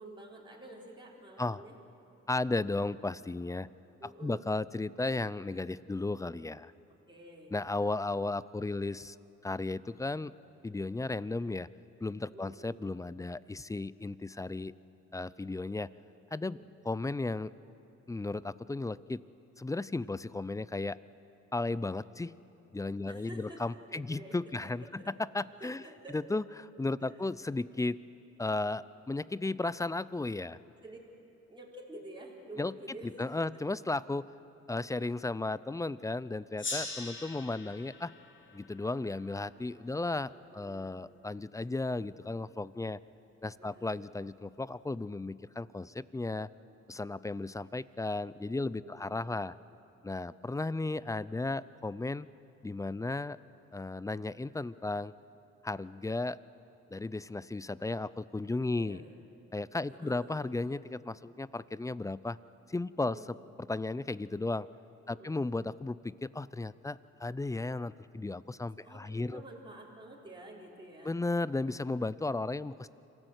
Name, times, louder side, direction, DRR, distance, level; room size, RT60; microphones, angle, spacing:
voice 1, 0.0-1.8 4.0-4.5 7.1-7.5 12.2-12.6 16.5-16.6 23.0-24.4 25.0-25.1 25.6-26.2 27.0-27.3 30.8-31.0 31.5-33.3 40.3-41.0 43.6-43.9 48.7-49.1 58.7-59.1 59.9-60.4 63.0-63.3 65.1-65.4 68.8-71.2, right 1 dB, 15° right, -3 dB, 4.1 m, -49 dB
voice 2, 2.3-3.7 4.0-6.7 7.5-9.2 9.4-10.3 10.6-11.7 12.0-14.7 15.1-15.9 16.3-16.6 16.8-17.5 18.1-19.2 19.6-21.0 21.5-22.3 22.7-25.8 26.1-28.0 28.4-30.6 32.6-32.7 33.2-34.3 34.7-38.1 38.5-43.0 43.4-46.5 46.9-49.5 50.0-52.3 52.6-53.4 53.7-55.1 55.6-56.4 56.9-59.0 59.5-62.4 62.7-64.7 65.1-69.4 71.0-72.9, left 2 dB, 10° left, 18 dB, 0.4 m, -35 dB
Gong, 36.6-39.7, left 3 dB, 40° left, 3.4 m, -42 dB
26.5 x 15.5 x 8.1 m, 2.9 s
cardioid pair, 90°, 30 cm